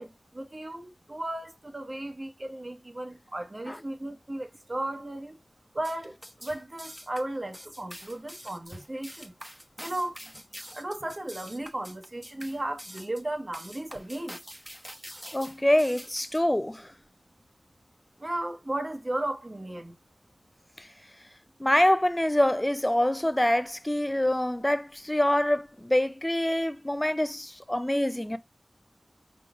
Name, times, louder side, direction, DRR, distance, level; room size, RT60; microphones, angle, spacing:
voice 1, 0.0-5.4 5.7-9.3 9.8-10.4 10.7-14.4 18.2-20.0, right 1 dB, 45° right, 1.0 m, -35 dB
sound 1, 5.8-16.4, equal, 5° right, 0.8 m, -45 dB
voice 2, 15.3-16.9 20.8-20.9 21.6-28.4, left 1 dB, 15° left, 0.4 m, -25 dB
4.8 x 3.7 x 2.4 m
wide cardioid pair, 45°, 0 cm